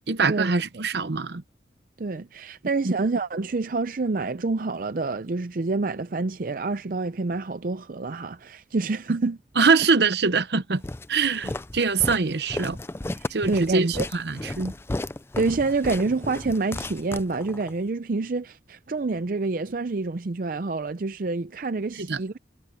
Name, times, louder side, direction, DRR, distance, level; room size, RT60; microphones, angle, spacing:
voice 1, 0.1-1.4 2.8-2.9 9.6-10.8 11.1-12.8 13.3-14.7 22.0-22.2, right 4 dB, 70° right, 0.9 m, -23 dB
voice 2, 2.0-9.4 11.3-11.4 13.2-14.1 15.4-22.4, right 3 dB, 50° right, 0.5 m, -27 dB
Walk footsteps, 10.8-17.8, left 2 dB, 15° left, 0.4 m, -34 dB
head